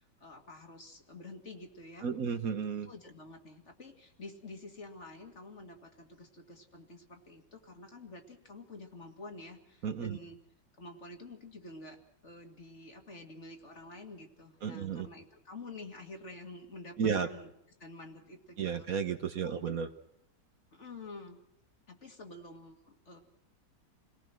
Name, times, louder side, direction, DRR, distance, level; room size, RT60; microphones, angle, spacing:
voice 1, 0.0-2.1 2.8-10.4 10.8-17.5 17.8-18.9 19.4-19.8 20.7-21.4 21.9-23.2, left 2 dB, 40° left, 4 dB, 2.5 m, -49 dB
voice 2, 2.0-2.9 9.8-10.2 14.6-15.1 17.0-17.3 18.6-19.9, right 6 dB, 55° right, 9 dB, 1.3 m, -33 dB
28.0 x 18.5 x 6.2 m, 0.75 s
omnidirectional pair, 1.9 m